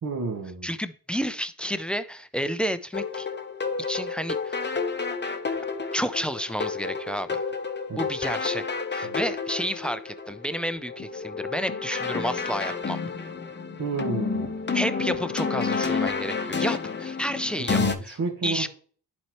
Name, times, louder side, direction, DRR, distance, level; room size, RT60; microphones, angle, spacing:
voice 1, 0.0-0.7 7.9-8.1 9.0-9.2 13.8-14.6 17.6-18.7, right 4 dB, 55° right, 1.8 m, -31 dB
voice 2, 0.6-3.3 3.9-4.7 5.9-7.4 8.0-13.0 14.7-18.2 18.4-18.7, equal, 5° left, 0.4 m, -30 dB
sound 1, 2.9-17.9, left 4 dB, 25° left, 0.8 m, -30 dB
11.0 x 4.3 x 3.0 m
cardioid pair, 95°, 40 cm